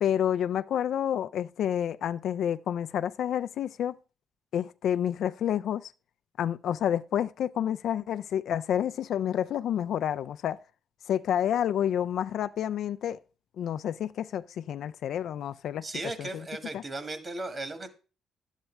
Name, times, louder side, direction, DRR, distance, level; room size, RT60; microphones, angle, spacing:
voice 1, 0.0-4.0 4.5-5.9 6.4-10.6 11.1-13.2 13.6-15.9 16.2-16.4 16.7-16.8, left 10 dB, 70° left, 0.3 m, -29 dB
voice 2, 15.8-17.9, right 2 dB, 35° right, 1.6 m, -36 dB
11.0 x 8.1 x 3.3 m
cardioid pair, 90°, 0 cm